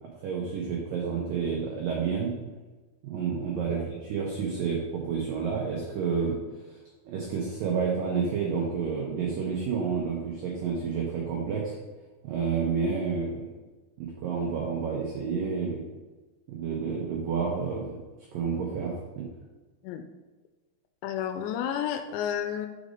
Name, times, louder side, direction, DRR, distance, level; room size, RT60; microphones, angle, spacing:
voice 1, 0.0-2.3 3.0-6.4 6.7-6.8 7.0-11.7 12.2-13.5 14.0-15.8 16.5-18.0 18.3-19.3, right 5 dB, 90° right, -2 dB, 1.9 m, -30 dB
voice 2, 21.0-22.7, left 9 dB, 85° left, 7 dB, 2.7 m, -31 dB
6.6 x 5.2 x 5.0 m, 1.2 s
omnidirectional pair, 5.3 m